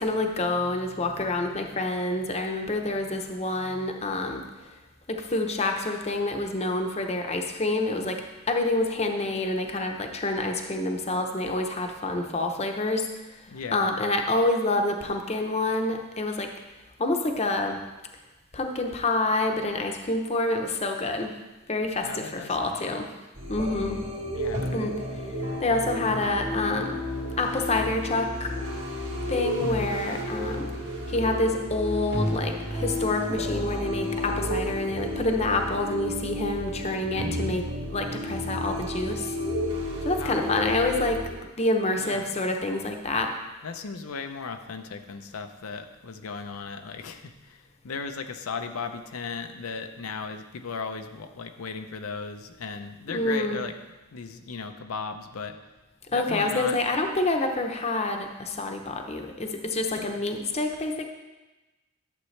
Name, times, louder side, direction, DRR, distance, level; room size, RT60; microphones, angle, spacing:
voice 1, 0.0-4.4 5.1-13.1 13.7-16.5 17.0-17.8 18.5-21.3 21.7-23.1 23.5-24.0 24.7-24.9 25.6-27.0 27.4-28.5 29.3-30.7 31.1-37.6 37.9-39.3 40.0-41.2 41.6-43.3 53.1-53.6 56.1-61.1, left 2 dB, 30° left, 4 dB, 0.7 m, -27 dB
voice 2, 13.5-13.9 22.0-23.0 24.3-24.8 25.9-26.3 40.2-40.9 42.0-42.3 43.6-53.7 54.1-55.6 56.1-56.8 60.0-60.1, left 5 dB, 90° left, 6 dB, 0.6 m, -36 dB
sound 1, 23.3-41.3, left 1 dB, 55° right, 1.9 m, -32 dB
11.5 x 7.4 x 3.2 m, 1.1 s
head